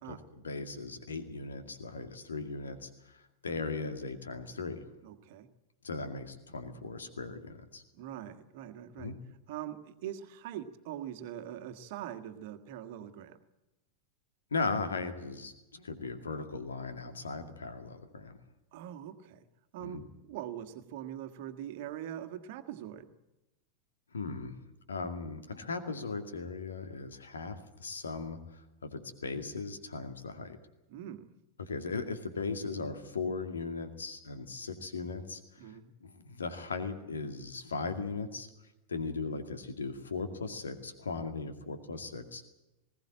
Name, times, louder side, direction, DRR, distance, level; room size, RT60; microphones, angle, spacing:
voice 1, 0.4-4.8 5.8-7.8 9.0-9.2 14.5-18.4 19.8-20.0 24.1-24.6 24.9-30.6 31.6-38.5 38.9-42.4, left 4 dB, 70° left, 8 dB, 2.2 m, -38 dB
voice 2, 5.0-5.5 7.9-9.1 9.5-13.4 18.7-19.4 19.7-23.1 30.9-31.3 35.6-35.9, right 11 dB, 50° right, 9 dB, 1.6 m, -42 dB
20.5 x 17.0 x 8.8 m, 0.98 s
figure-of-eight pair, 90°, 0 cm